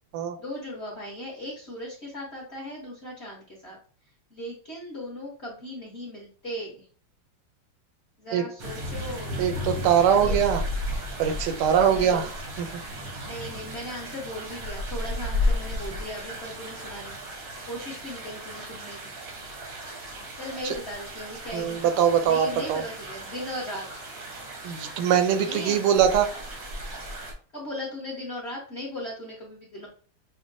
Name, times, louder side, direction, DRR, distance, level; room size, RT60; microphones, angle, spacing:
voice 1, 0.4-3.8 4.3-6.8 8.2-9.5 10.2-10.5 11.9-12.3 13.2-17.2 17.7-19.0 20.4-23.9 25.5-25.8 27.5-29.9, left 1 dB, 40° left, -4 dB, 0.9 m, -37 dB
sound 1, 8.6-27.3, left 1 dB, 55° right, 1.0 m, -34 dB
voice 2, 9.4-10.6 11.2-12.8 21.5-22.8 24.6-26.3, right 8 dB, 80° right, 7 dB, 1.4 m, -22 dB
6.1 x 2.1 x 2.6 m, 0.42 s
omnidirectional pair, 2.4 m